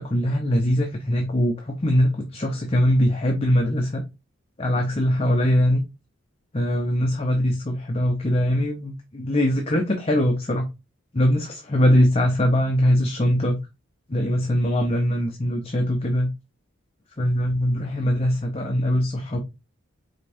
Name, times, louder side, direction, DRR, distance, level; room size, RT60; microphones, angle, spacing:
voice 1, 0.0-4.0 4.6-5.8 6.5-10.7 11.1-13.6 14.1-16.3 17.2-19.4, equal, 30° left, 0.6 m, -22 dB
5.1 x 3.5 x 2.6 m
head